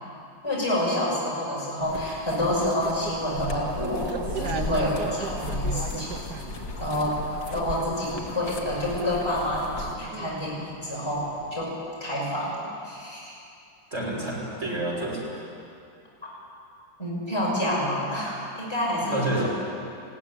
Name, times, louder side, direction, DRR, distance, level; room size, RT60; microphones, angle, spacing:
voice 1, 0.4-4.1 4.3-6.1 6.8-7.2 7.5-11.7 12.0-12.6 12.8-13.4 17.0-19.5, left 1 dB, 15° left, -6 dB, 6.1 m, -28 dB
sound 1, 1.8-10.0, left 3 dB, 55° left, 2.2 m, -36 dB
sound 2, 2.3-11.7, right 5 dB, 65° right, 1.7 m, -39 dB
voice 2, 13.9-15.5 18.9-19.5, right 2 dB, 40° right, -4 dB, 6.3 m, -29 dB
20.5 x 16.0 x 9.9 m, 2.5 s
omnidirectional pair, 1.9 m